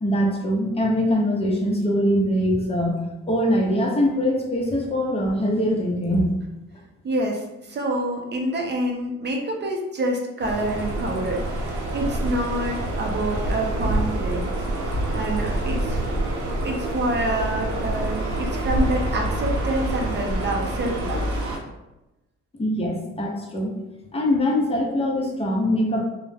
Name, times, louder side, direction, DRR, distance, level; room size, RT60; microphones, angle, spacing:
voice 1, 0.0-3.0 3.3-6.3 22.6-23.7 24.1-26.0, equal, 20° left, -1 dB, 0.7 m, -22 dB
voice 2, 7.0-14.5 15.1-16.1 16.6-21.3, right 1 dB, 35° right, 1 dB, 0.5 m, -27 dB
sound 1, 10.4-21.6, right 1 dB, 80° right, 0.7 m, -26 dB
2.3 x 2.1 x 3.2 m, 0.97 s
cardioid pair, 90°, 30 cm